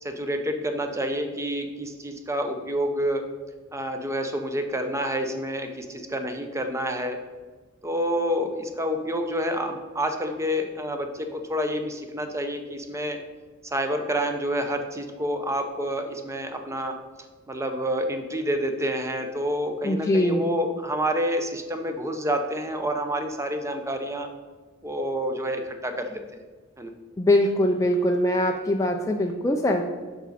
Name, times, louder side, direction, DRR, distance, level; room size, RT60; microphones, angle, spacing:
voice 1, 0.0-3.3 3.7-7.2 7.8-13.2 13.6-17.0 17.5-24.3 24.8-26.2 26.8-26.9, equal, 15° right, 6 dB, 0.7 m, -28 dB
voice 2, 19.8-20.4 27.2-29.8, left 1 dB, 15° left, 2 dB, 0.4 m, -22 dB
8.0 x 6.1 x 4.1 m, 1.4 s
head